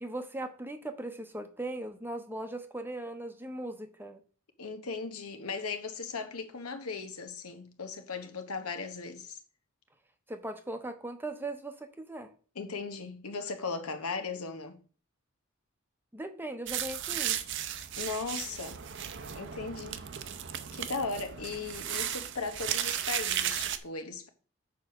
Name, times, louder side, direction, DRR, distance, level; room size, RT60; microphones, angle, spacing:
voice 1, 0.0-4.2 10.3-12.3 16.1-17.4, right 1 dB, 10° right, 0.7 m, -39 dB
voice 2, 4.6-9.4 12.5-14.8 18.0-18.8 19.3-20.1 20.7-24.3, left 4 dB, 85° left, 1.2 m, -37 dB
sound 1, 16.7-23.8, right 10 dB, 55° right, 0.6 m, -35 dB
6.8 x 4.8 x 5.8 m
head